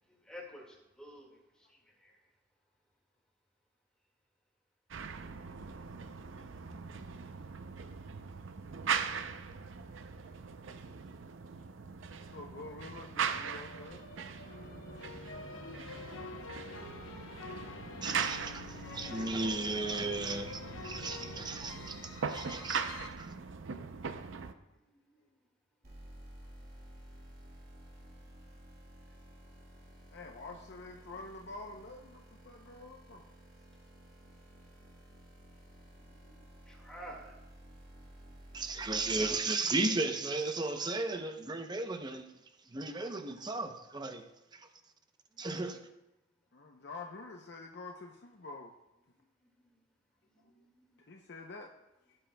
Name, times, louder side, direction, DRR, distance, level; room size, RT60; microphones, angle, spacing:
voice 1, 0.3-1.3 18.8-19.6 24.9-25.0 36.1-37.3 50.3-50.4 50.8-50.9, equal, 5° left, -2 dB, 1.8 m, -50 dB
sound 1, 4.9-24.5, right 6 dB, 75° right, 0.5 m, -40 dB
voice 2, 12.3-14.0 30.1-33.3 46.5-48.7 51.1-51.7 52.1-52.2, left 3 dB, 55° left, 2 dB, 0.6 m, -47 dB
sound 2, 13.3-23.1, left 3 dB, 85° left, 0.9 m, -47 dB
voice 3, 18.0-22.8 23.2-23.3 38.5-42.3 42.7-44.2 44.5-44.7 45.4-45.9, right 3 dB, 20° right, 7 dB, 0.6 m, -35 dB
sound 3, 25.8-39.4, right 1 dB, 45° right, 2.3 m, -54 dB
16.0 x 7.6 x 2.2 m, 0.95 s
head